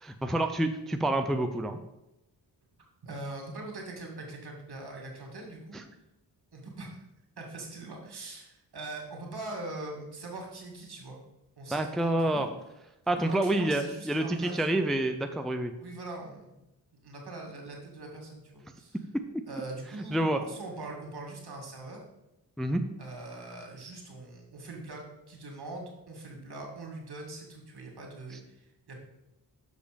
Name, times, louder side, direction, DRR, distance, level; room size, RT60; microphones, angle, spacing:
voice 1, 0.0-1.8 11.7-12.5 13.1-15.7 20.1-20.4 22.6-22.8, right 1 dB, ahead, 7 dB, 0.5 m, -28 dB
voice 2, 3.0-5.8 6.5-7.0 7.4-11.2 11.6-12.5 13.1-14.8 15.8-16.5 17.0-19.0 19.5-22.0 23.0-29.0, right 2 dB, 65° right, 1 dB, 2.1 m, -42 dB
6.5 x 5.2 x 5.1 m, 0.91 s
cardioid pair, 65°, 43 cm